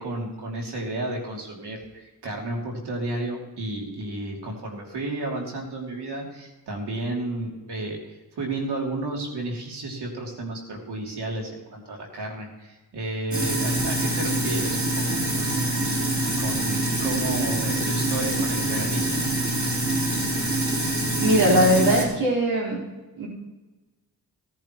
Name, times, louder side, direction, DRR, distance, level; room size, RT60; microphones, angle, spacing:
voice 1, 0.0-8.0 8.4-15.7 16.4-19.1, right 2 dB, 85° right, -1 dB, 3.1 m, -32 dB
Sink (filling or washing), 13.3-22.0, right 1 dB, 45° right, 4.0 m, -25 dB
voice 2, 21.2-22.8 23.2-23.3, right 1 dB, 70° right, -5 dB, 4.4 m, -20 dB
17.5 x 10.5 x 3.1 m, 1.2 s
cardioid pair, 60°, 39 cm